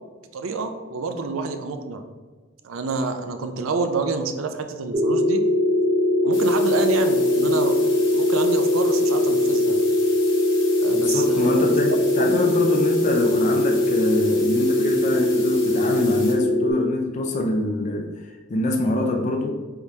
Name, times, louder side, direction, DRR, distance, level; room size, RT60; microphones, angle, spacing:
voice 1, 0.3-2.0 2.6-5.4 6.2-7.8 8.1-9.8 10.8-12.4, right 4 dB, 90° right, 7 dB, 0.5 m, -28 dB
sound 1, 4.9-16.7, left 1 dB, 35° right, 0.5 m, -21 dB
sound 2, 6.3-16.3, left 4 dB, 65° left, 1.1 m, -38 dB
voice 2, 10.9-18.1 18.5-19.6, left 1 dB, 35° left, 1 dB, 0.4 m, -24 dB
4.6 x 3.5 x 2.7 m, 1.4 s
head